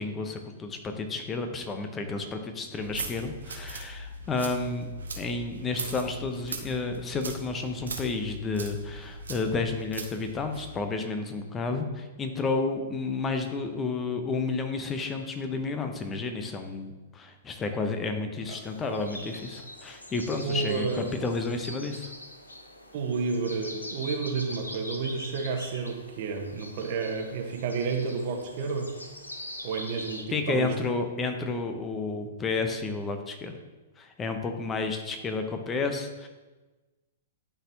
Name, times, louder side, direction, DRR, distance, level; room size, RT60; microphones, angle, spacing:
voice 1, 0.0-22.1 30.3-33.6 34.0-36.3, left 3 dB, 20° left, 6 dB, 0.7 m, -31 dB
sound 1, 2.7-10.7, right 2 dB, 70° right, 1.0 m, -40 dB
sound 2, 18.6-30.2, left 1 dB, 85° left, 0.8 m, -43 dB
voice 2, 20.4-21.2 22.9-28.9 29.6-30.7, right 4 dB, 50° right, 3 dB, 1.1 m, -31 dB
11.0 x 4.2 x 2.8 m, 1.2 s
figure-of-eight pair, 110°, 0 cm